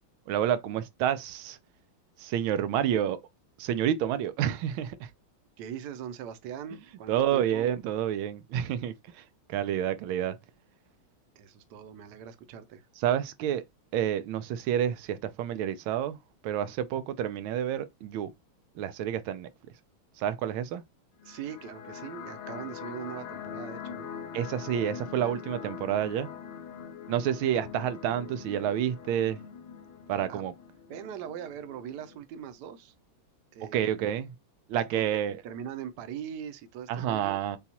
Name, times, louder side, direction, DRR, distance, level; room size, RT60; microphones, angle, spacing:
voice 1, 0.3-1.6 2.2-3.2 3.6-5.1 7.1-9.2 9.5-10.4 13.0-13.6 13.9-16.2 16.4-18.3 18.8-19.5 20.2-20.8 24.3-26.3 27.1-29.4 30.1-30.5 33.7-34.3 34.7-35.4 36.9-37.6, right 10 dB, 90° right, 1.4 m, -29 dB
voice 2, 5.6-7.7 11.4-12.9 21.2-24.1 30.3-30.4 30.9-32.9 33.5-34.1 34.9-37.4, right 8 dB, 70° right, 1.2 m, -41 dB
sound 1, 21.2-32.2, left 7 dB, 85° left, 1.5 m, -43 dB
7.0 x 2.4 x 2.9 m
omnidirectional pair, 2.2 m